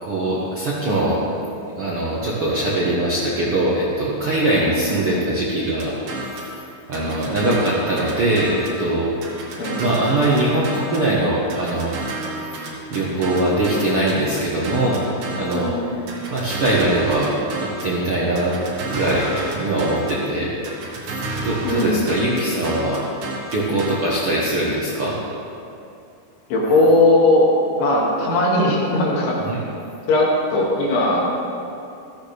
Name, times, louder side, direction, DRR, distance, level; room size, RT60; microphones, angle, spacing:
voice 1, 0.0-1.2 1.8-5.9 6.9-9.1 9.8-11.9 12.9-15.0 15.3-15.7 16.3-17.3 17.6-18.6 18.9-20.5 21.4-23.1 23.5-25.2 29.5-29.6, right 1 dB, 60° right, -6 dB, 1.4 m, -21 dB
sound 1, 5.8-6.5 6.9-8.8 9.2-11.1 11.5-15.7 16.1-18.0 18.4-20.3 20.6-24.0, right 2 dB, 90° right, 4.1 m, -31 dB
voice 2, 15.5-15.9 21.6-22.1 26.5-29.4 30.1-31.3, left 2 dB, 85° left, -4 dB, 4.3 m, -18 dB
15.0 x 14.5 x 3.4 m, 2.7 s
omnidirectional pair, 4.6 m